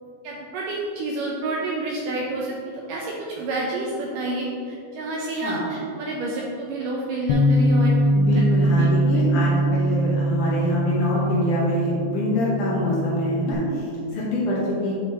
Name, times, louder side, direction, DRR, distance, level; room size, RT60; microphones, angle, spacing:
voice 1, 0.0-8.0 8.3-9.0, right 2 dB, 80° right, -2 dB, 2.0 m, -29 dB
Bass guitar, 7.3-13.5, right 1 dB, 85° left, 2.5 m, -22 dB
voice 2, 8.1-14.9, left 1 dB, 65° left, -5 dB, 2.2 m, -25 dB
9.3 x 6.7 x 2.9 m, 2.6 s
omnidirectional pair, 4.5 m